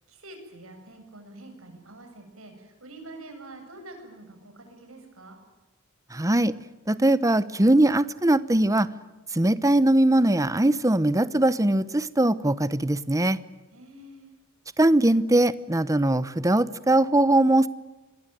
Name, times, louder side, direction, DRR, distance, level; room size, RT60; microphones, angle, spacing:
voice 1, 0.1-5.4 13.7-14.3, right 2 dB, 80° right, 5 dB, 7.9 m, -46 dB
voice 2, 6.1-6.5 6.9-8.9 9.3-13.4 14.8-17.7, right 1 dB, 15° right, 16 dB, 0.9 m, -21 dB
27.5 x 22.0 x 9.2 m, 1.2 s
head